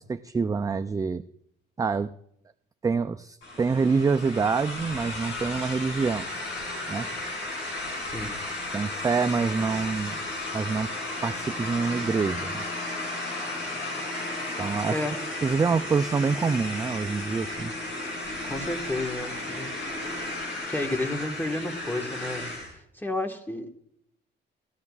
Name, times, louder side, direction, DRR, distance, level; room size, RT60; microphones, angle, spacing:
voice 1, 0.1-1.2 1.8-2.1 2.8-6.3 6.9-7.1 8.7-10.2 10.5-10.9 11.2-12.6 14.6-15.0 15.4-17.7, right 5 dB, 15° right, 9 dB, 0.3 m, -26 dB
sound 1, 3.4-22.7, left 2 dB, 70° left, 5.1 m, -34 dB
voice 2, 8.0-8.4 14.9-15.1 18.4-19.7 20.7-22.5 22.9-23.7, left 2 dB, 10° left, 5 dB, 1.4 m, -31 dB
18.0 x 13.0 x 2.4 m, 0.73 s
cardioid pair, 90°, 20 cm